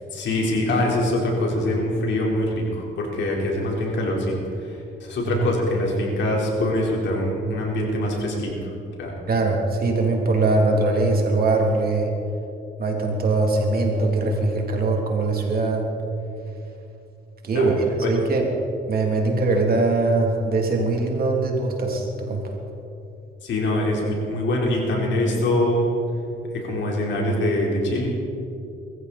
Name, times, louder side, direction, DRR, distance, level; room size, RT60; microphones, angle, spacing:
voice 1, 0.1-4.3 5.0-8.5 9.0-9.1 17.5-17.7 18.0-18.1 23.4-25.9 26.5-28.1, left 1 dB, 70° left, -2 dB, 4.4 m, -23 dB
voice 2, 9.3-12.1 12.8-15.9 17.4-18.4 18.9-22.4, right 3 dB, 50° right, 1 dB, 3.2 m, -21 dB
22.5 x 14.5 x 4.4 m, 2.7 s
cardioid pair, 90°, 20 cm